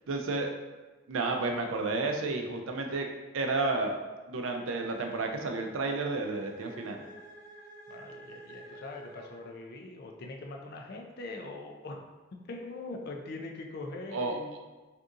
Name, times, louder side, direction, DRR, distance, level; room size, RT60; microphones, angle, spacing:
voice 1, 0.1-0.5 1.1-3.1 3.3-4.0 4.3-7.0 14.1-14.6, right 3 dB, 85° right, 3 dB, 0.4 m, -31 dB
sound 1, 4.9-9.7, right 1 dB, 40° right, 0.9 m, -51 dB
voice 2, 7.9-12.0 12.3-14.6, left 2 dB, 55° left, 2 dB, 0.4 m, -42 dB
2.7 x 2.5 x 3.6 m, 1.2 s
head